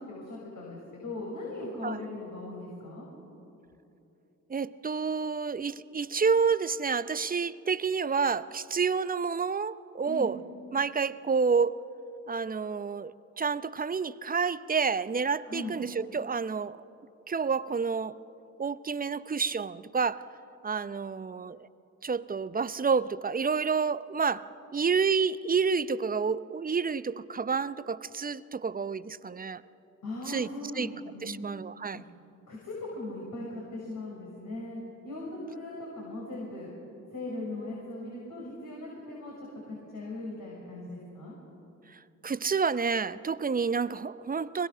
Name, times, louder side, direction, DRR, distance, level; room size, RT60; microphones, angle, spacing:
voice 1, 0.0-3.1 10.1-10.3 15.5-15.7 30.0-31.4 31.9-32.0 32.5-36.7 37.1-39.3 39.7-41.3, left 2 dB, 50° left, -3 dB, 5.8 m, -39 dB
voice 2, 4.5-10.4 10.7-11.8 12.3-16.8 17.3-18.2 18.6-20.2 20.6-21.6 22.0-24.5 24.7-29.6 30.3-30.5 30.7-30.9 31.2-32.0 42.2-44.7, right 5 dB, 20° right, 16 dB, 0.7 m, -29 dB
25.0 x 21.0 x 6.4 m, 2.9 s
hypercardioid pair, 45°, 39 cm